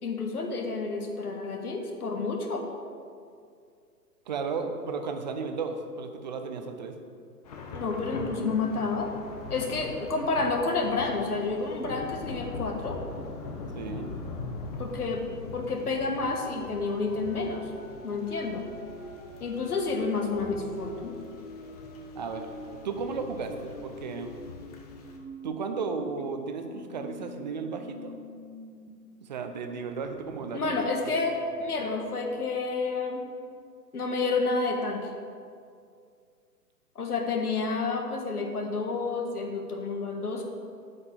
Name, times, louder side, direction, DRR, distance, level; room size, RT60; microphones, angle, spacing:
voice 1, 0.0-2.7 7.7-9.1 9.5-13.0 14.8-15.3 15.5-17.7 18.0-18.7 19.4-21.2 30.5-33.3 33.9-35.1 36.9-40.4, left 3 dB, 65° left, 2 dB, 1.7 m, -30 dB
voice 2, 4.3-7.0 13.7-14.1 22.1-22.5 22.8-24.3 25.4-28.2 29.2-30.8, right 4 dB, 30° right, 6 dB, 0.6 m, -34 dB
Thunder / Rain, 7.4-25.2, left 3 dB, 25° left, 0.7 m, -42 dB
sound 1, 16.4-28.9 29.2-29.3 29.7-32.4, left 1 dB, 45° left, 1.3 m, -47 dB
8.3 x 5.1 x 7.4 m, 2.3 s
figure-of-eight pair, 125°, 48 cm